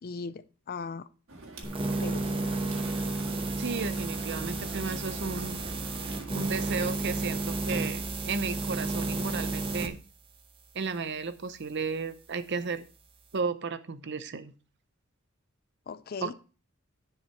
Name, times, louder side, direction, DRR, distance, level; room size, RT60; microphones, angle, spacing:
voice 1, 0.0-1.1 2.0-2.3 15.9-16.3, left 4 dB, 45° left, 0.4 m, -38 dB
sound 1, 1.3-6.9, right 2 dB, 70° right, 1.7 m, -45 dB
sound 2, 1.6-9.9, right 2 dB, 25° right, 0.9 m, -32 dB
voice 2, 3.6-5.6 6.3-10.0 10.7-12.8 13.3-14.5 16.2-16.3, right 5 dB, 55° right, 0.7 m, -34 dB
10.0 x 5.0 x 4.4 m
head